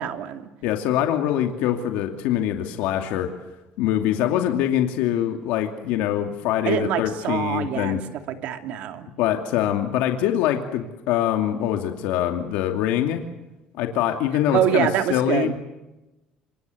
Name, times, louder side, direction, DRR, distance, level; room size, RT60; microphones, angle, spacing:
voice 1, 0.0-0.5 6.7-9.1 14.5-15.6, right 10 dB, 60° right, 6 dB, 2.7 m, -25 dB
voice 2, 0.6-3.3 3.8-8.0 9.2-13.2 13.8-15.6, left 11 dB, 85° left, 4 dB, 2.5 m, -24 dB
27.0 x 25.5 x 7.9 m, 1.0 s
cardioid pair, 155°, 3 cm